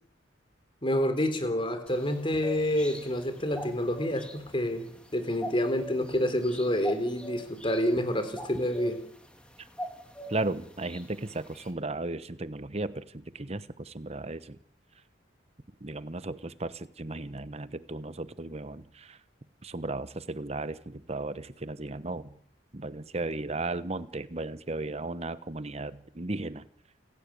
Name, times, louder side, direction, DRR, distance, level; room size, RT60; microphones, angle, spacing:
voice 1, 0.8-9.0, left 1 dB, 30° left, 9 dB, 3.6 m, -28 dB
sound 1, 1.9-11.7, equal, 5° left, 3.1 m, -44 dB
voice 2, 10.3-14.6 15.8-19.2 19.6-22.3 22.7-26.7, right 2 dB, 35° right, 14 dB, 1.1 m, -35 dB
29.0 x 15.5 x 8.6 m, 0.66 s
head